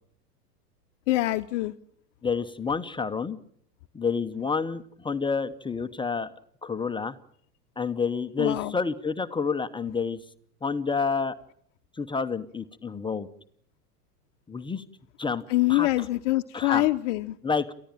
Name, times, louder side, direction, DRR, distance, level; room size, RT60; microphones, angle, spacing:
voice 1, 1.1-1.7 8.4-8.7 15.5-17.4, left 17 dB, 50° left, 8 dB, 0.9 m, -25 dB
voice 2, 2.2-3.4 3.9-6.3 6.6-7.2 7.8-10.2 10.6-11.3 11.9-13.3 14.5-14.8 15.2-15.4 15.7-16.1 16.5-16.9 17.4-17.7, left 5 dB, 10° left, 10 dB, 1.0 m, -29 dB
29.0 x 15.0 x 9.1 m, 0.67 s
hypercardioid pair, 95°, 47 cm